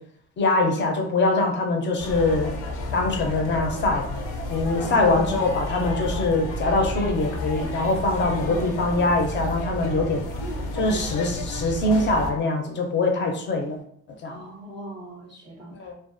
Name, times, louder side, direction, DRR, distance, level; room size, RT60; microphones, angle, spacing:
voice 1, 0.4-2.5 2.9-4.0 4.5-10.2 10.7-13.8 14.2-14.4 15.8-16.0, left 2 dB, 40° left, 2 dB, 0.5 m, -23 dB
sound 1, 2.0-12.3, left 1 dB, 90° left, 0.6 m, -31 dB
voice 2, 4.8-5.4 8.4-8.7 14.2-16.0, equal, 15° right, -2 dB, 0.4 m, -39 dB
2.3 x 2.3 x 2.5 m, 0.64 s
cardioid pair, 125°, 30 cm